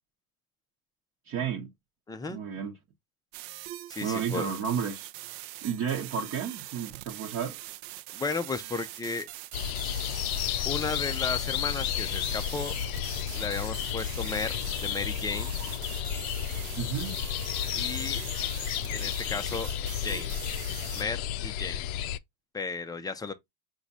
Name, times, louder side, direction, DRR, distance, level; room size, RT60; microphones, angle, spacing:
voice 1, 1.3-1.7 2.3-2.7 4.0-5.1 5.6-7.6 16.7-17.2, right 7 dB, 35° right, 0.9 m, -32 dB
voice 2, 2.1-2.4 3.9-4.5 8.1-9.3 10.7-12.7 13.3-15.5 17.7-18.2 18.9-19.7 20.0-20.3 20.9-21.8 22.5-23.3, left 4 dB, 10° left, 0.4 m, -34 dB
sound 1, 3.3-21.0, right 16 dB, 55° right, 0.5 m, -43 dB
sound 2, 9.5-22.2, left 11 dB, 75° left, 0.6 m, -32 dB
4.8 x 2.4 x 4.0 m
supercardioid pair, 110°, 44 cm